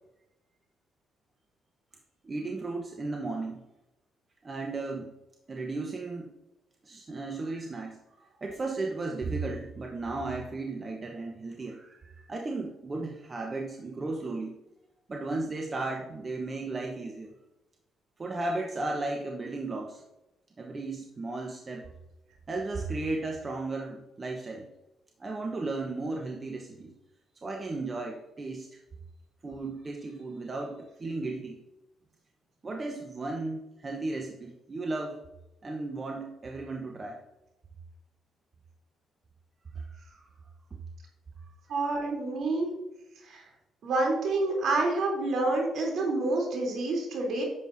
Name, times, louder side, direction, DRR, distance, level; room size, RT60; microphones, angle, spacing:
voice 1, 2.2-3.6 4.4-5.2 5.5-6.3 6.8-14.5 15.1-17.3 18.2-20.0 20.6-21.9 22.5-24.7 25.2-26.9 27.3-28.8 29.4-31.6 32.6-35.2 35.6-37.2 39.7-40.3 41.4-41.5, right 3 dB, 35° right, 2 dB, 1.1 m, -35 dB
voice 2, 41.7-42.7 43.2-43.4 43.8-47.4, right 2 dB, 65° right, 0 dB, 3.3 m, -28 dB
10.0 x 7.5 x 2.7 m, 0.96 s
supercardioid pair, 65°, 0 cm